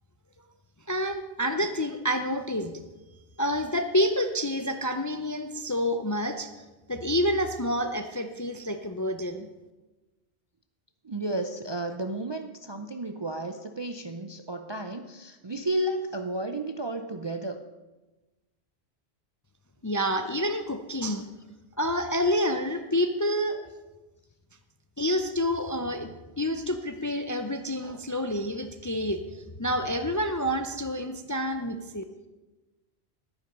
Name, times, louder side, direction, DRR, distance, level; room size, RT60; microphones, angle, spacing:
voice 1, 0.9-2.7 3.4-6.5 6.9-9.5 19.8-21.3 21.8-23.6 25.0-26.1 26.4-29.2 29.6-32.0, equal, 25° left, 7 dB, 0.4 m, -28 dB
voice 2, 11.0-17.6, right 1 dB, 35° right, 6 dB, 0.4 m, -32 dB
10.5 x 10.0 x 5.3 m, 1.1 s
omnidirectional pair, 1.1 m